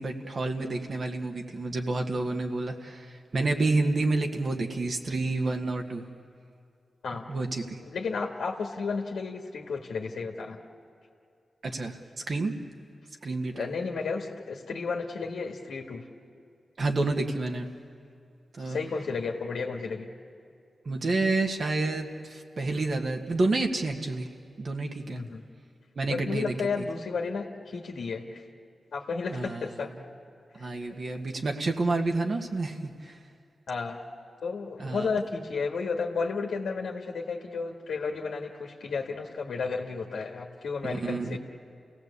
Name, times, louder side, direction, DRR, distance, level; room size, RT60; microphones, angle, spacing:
voice 1, 0.0-6.0 7.3-7.8 11.6-12.0 12.3-12.5 13.2-13.9 16.8-17.7 18.5-18.8 20.9-24.3 24.6-25.2 26.0-26.8 29.3-29.7 30.5-33.2 34.8-35.1 40.8-41.4, right 2 dB, 55° right, 3 dB, 1.9 m, -29 dB
voice 2, 7.5-10.6 13.5-16.0 18.6-20.1 25.1-25.4 26.0-28.5 28.9-29.9 30.6-30.9 33.7-34.0 34.4-41.4, left 4 dB, 90° left, 0 dB, 1.8 m, -33 dB
29.5 x 17.0 x 8.4 m, 2.4 s
cardioid pair, 70°, 0 cm